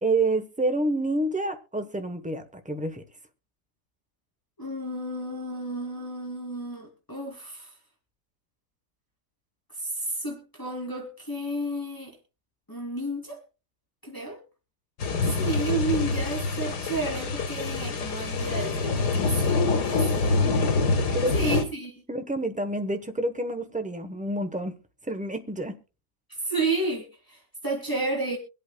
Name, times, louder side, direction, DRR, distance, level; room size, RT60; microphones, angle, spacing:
voice 1, 0.0-3.0 21.1-21.5 22.1-24.8 25.1-25.7, right 2 dB, 5° right, 0.7 m, -28 dB
voice 2, 4.6-7.7 9.8-12.1 12.7-13.4 14.0-14.4 15.4-20.4 21.3-21.9 26.4-28.4, right 2 dB, 10° left, 2.9 m, -32 dB
sound 1, 15.0-21.6, left 3 dB, 80° left, 2.0 m, -25 dB
24.5 x 8.2 x 2.2 m
omnidirectional pair, 1.7 m